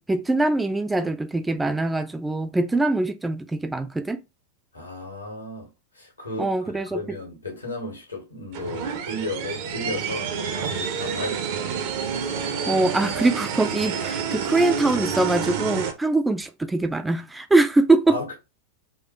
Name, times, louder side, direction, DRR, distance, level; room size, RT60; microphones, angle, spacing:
voice 1, 0.0-4.2 6.4-7.2 12.7-18.2, right 2 dB, 10° right, 0.4 m, -23 dB
voice 2, 4.7-5.7 5.9-11.7 18.1-18.3, left 2 dB, 80° left, 1.6 m, -34 dB
sound 1, 8.5-15.9, right 6 dB, 50° right, 0.7 m, -28 dB
4.3 x 2.4 x 2.9 m
figure-of-eight pair, 90°, 0 cm